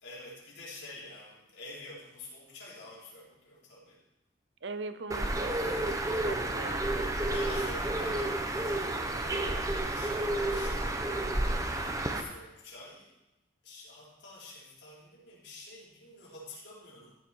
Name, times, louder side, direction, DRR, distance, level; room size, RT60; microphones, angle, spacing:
voice 1, 0.0-4.0 7.3-11.0 11.4-13.1 13.6-17.1, left 2 dB, 70° left, -6 dB, 4.4 m, -48 dB
voice 2, 4.6-6.8, right 3 dB, 75° right, 11 dB, 0.7 m, -41 dB
Bird, 5.1-12.2, right 1 dB, 20° right, 0.8 m, -31 dB
14.5 x 7.3 x 4.7 m, 0.93 s
head